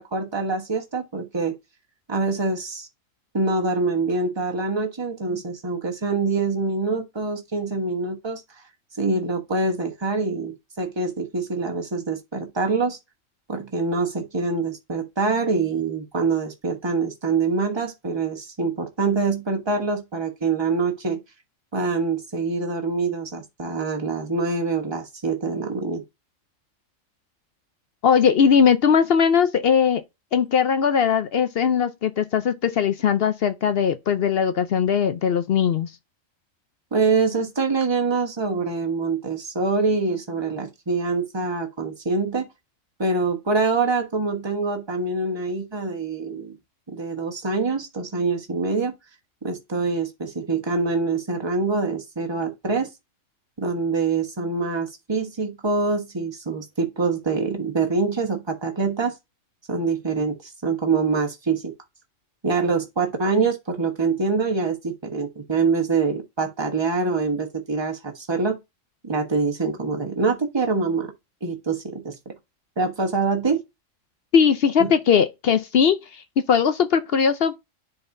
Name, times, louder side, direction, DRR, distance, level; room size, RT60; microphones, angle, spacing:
voice 1, 0.0-1.6 2.1-2.9 3.3-8.4 9.0-13.0 13.5-21.2 21.7-26.0 36.9-42.5 43.0-46.6 46.9-48.9 49.4-52.9 53.6-59.1 59.7-60.4 60.6-61.7 62.4-68.6 69.0-71.1 71.4-72.3 72.8-73.6 74.8-74.9, right 4 dB, 20° right, 1.2 m, -25 dB
voice 2, 28.0-30.0 30.3-35.9 74.3-77.5, left 7 dB, 60° left, 0.7 m, -20 dB
10.5 x 4.0 x 2.6 m
omnidirectional pair, 1.4 m